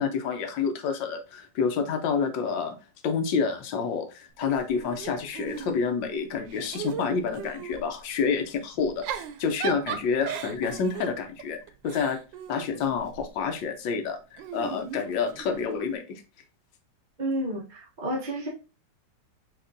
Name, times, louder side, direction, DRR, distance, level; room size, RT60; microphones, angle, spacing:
voice 1, 0.0-2.7 3.0-12.2 12.5-16.2, left 5 dB, 90° left, 6 dB, 1.5 m, -28 dB
Giggle / Chuckle chortle, 4.4-6.0 6.4-7.9 8.8-13.3 14.4-15.8, right 8 dB, 90° right, 1.3 m, -38 dB
voice 2, 17.2-18.5, right 1 dB, 35° right, -4 dB, 0.9 m, -30 dB
5.9 x 2.9 x 2.6 m, 0.32 s
omnidirectional pair, 2.0 m